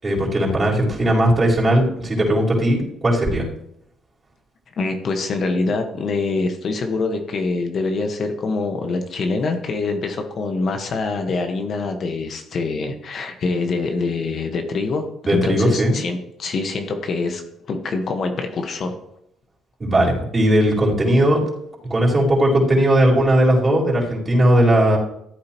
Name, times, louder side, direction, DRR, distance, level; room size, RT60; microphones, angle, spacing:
voice 1, 0.0-3.5 15.3-15.9 19.8-21.4 21.9-25.0, right 1 dB, 30° right, -5 dB, 4.5 m, -17 dB
voice 2, 4.8-17.4 17.7-19.0, left 3 dB, 55° left, 5 dB, 1.4 m, -25 dB
14.5 x 8.6 x 3.0 m, 0.77 s
cardioid pair, 80°, 0 cm